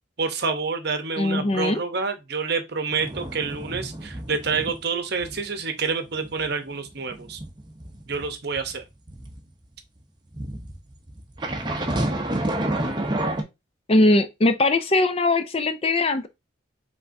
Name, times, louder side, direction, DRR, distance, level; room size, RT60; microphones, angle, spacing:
voice 1, 0.2-7.4 8.1-8.8, right 5 dB, 55° right, 0.8 m, -28 dB
voice 2, 1.2-1.8 13.9-16.3, left 2 dB, 30° left, 0.4 m, -20 dB
sound 1, 2.9-4.8 5.2-5.4 5.8-9.4 10.3-13.4, right 1 dB, 20° right, 0.7 m, -30 dB
5.3 x 3.5 x 2.6 m
head